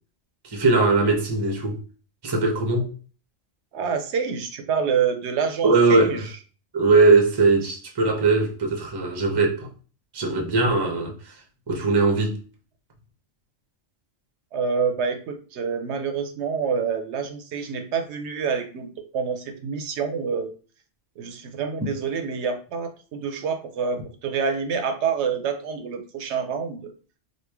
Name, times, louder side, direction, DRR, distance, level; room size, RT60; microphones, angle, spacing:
voice 1, 0.4-1.8 2.2-2.9 5.6-6.3 6.7-9.7 10.1-11.3 11.7-12.4, right 3 dB, 25° right, 0.6 m, -20 dB
voice 2, 3.7-6.2 14.5-20.5 21.2-26.9, right 6 dB, 75° right, 0.8 m, -27 dB
3.1 x 2.4 x 3.4 m
omnidirectional pair, 1.2 m